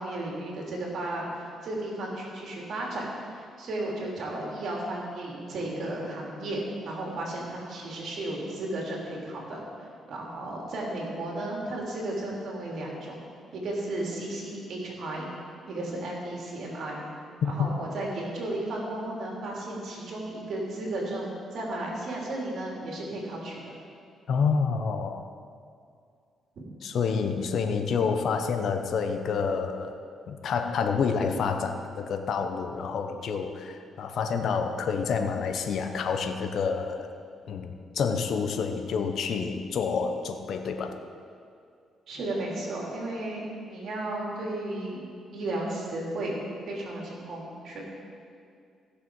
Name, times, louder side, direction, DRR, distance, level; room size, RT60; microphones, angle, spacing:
voice 1, 0.0-9.6 10.1-13.2 13.5-15.3 15.7-17.0 17.4-23.7 42.1-45.0 45.3-47.8, right 1 dB, 65° right, -3 dB, 3.0 m, -34 dB
voice 2, 17.4-17.8 24.3-25.2 26.8-29.9 30.3-37.1 37.5-41.0, left 5 dB, 65° left, 6 dB, 0.8 m, -28 dB
16.0 x 6.7 x 4.7 m, 2.3 s
cardioid pair, 90°, 0 cm